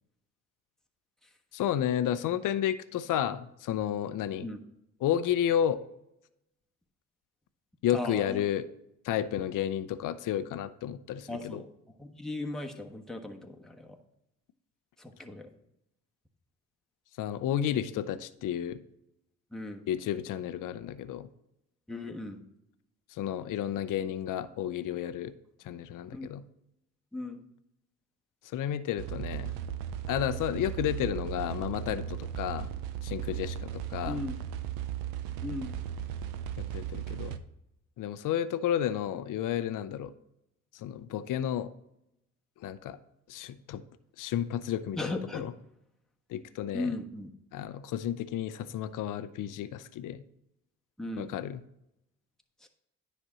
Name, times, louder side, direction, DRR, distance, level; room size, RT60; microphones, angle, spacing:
voice 1, 1.5-4.5 5.0-5.8 7.8-8.7 9.0-11.6 17.2-18.8 19.9-21.3 23.2-25.3 25.7-26.4 28.5-29.5 30.1-32.7 33.0-34.2 36.7-37.4 38.0-40.1 40.8-41.7 42.6-43.0 43.3-43.8 44.2-45.5 46.3-46.9 47.5-50.2 51.2-51.6, left 10 dB, 65° left, 13 dB, 0.6 m, -31 dB
voice 2, 7.9-8.4 11.3-11.7 12.0-14.0 15.0-15.5 19.5-19.8 21.9-22.4 26.1-26.3 27.1-27.4 34.1-34.3 35.4-35.8 45.0-45.5 46.7-47.3 51.0-51.3 52.6-52.7, left 2 dB, ahead, 1 dB, 1.2 m, -37 dB
sound 1, 29.0-37.4, right 10 dB, 85° right, 0.6 m, -36 dB
9.9 x 4.3 x 6.1 m, 0.82 s
supercardioid pair, 55°, 35 cm